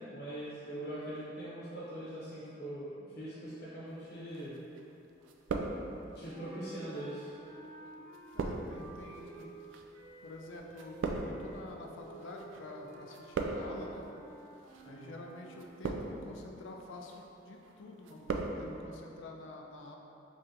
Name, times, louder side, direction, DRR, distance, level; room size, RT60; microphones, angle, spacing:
voice 1, 0.1-4.6 6.1-7.3 14.9-15.2, right 1 dB, 55° left, -10 dB, 0.8 m, -42 dB
sound 1, 4.3-4.9 5.2-6.2 7.0-12.6 12.9-13.9 14.6-14.9 15.5-16.3 16.8-17.2 17.6-18.6 18.8-18.9, right 3 dB, 85° right, 0.3 m, -39 dB
sound 2, 6.2-15.8, right 2 dB, 35° right, 1.0 m, -53 dB
voice 2, 8.3-9.5 10.2-14.0 14.8-20.0, left 2 dB, 85° left, 2 dB, 0.4 m, -48 dB
3.3 x 2.7 x 3.7 m, 2.9 s
head